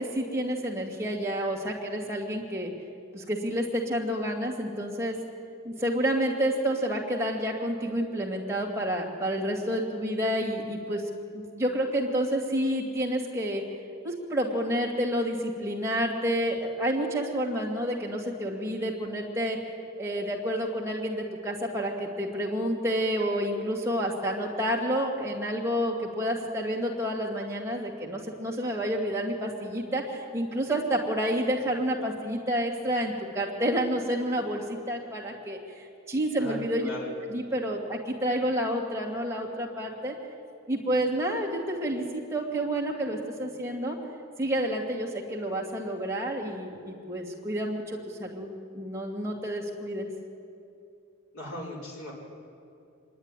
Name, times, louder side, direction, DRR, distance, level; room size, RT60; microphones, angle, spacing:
voice 1, 0.0-2.7 3.1-5.2 5.6-11.0 11.3-13.6 14.0-19.6 20.0-36.9 37.3-40.1 40.7-44.0 44.4-50.1, equal, 10° right, -2 dB, 2.4 m, -29 dB
voice 2, 36.4-37.1 51.3-52.1, left 1 dB, 70° left, -4 dB, 5.2 m, -38 dB
25.0 x 11.0 x 9.9 m, 2.6 s
head